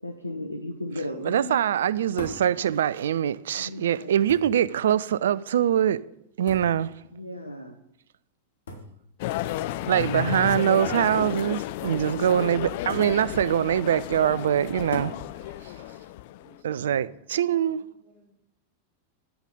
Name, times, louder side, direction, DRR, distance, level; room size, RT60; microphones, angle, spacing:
voice 1, 0.0-1.6 3.6-4.2 7.1-7.8, left 1 dB, 85° left, 0.6 m, -35 dB
voice 2, 1.2-6.0 6.4-6.9 9.9-15.1 16.6-17.8, right 10 dB, 60° right, 0.3 m, -23 dB
sound 1, 2.2-2.5 3.5-3.6 4.3-4.7 6.5-6.8 8.7-9.0 10.0-10.1 10.9-11.2 12.9-13.2 14.9-15.2 16.8-17.2, left 3 dB, 65° left, 1.3 m, -38 dB
voice 3, 7.0-7.5 16.4-16.8 17.2-18.3, right 1 dB, 25° right, 4.0 m, -61 dB
sound 2, 9.2-16.6, left 14 dB, 50° left, 0.3 m, -32 dB
9.0 x 7.0 x 5.3 m
figure-of-eight pair, 90°, 0 cm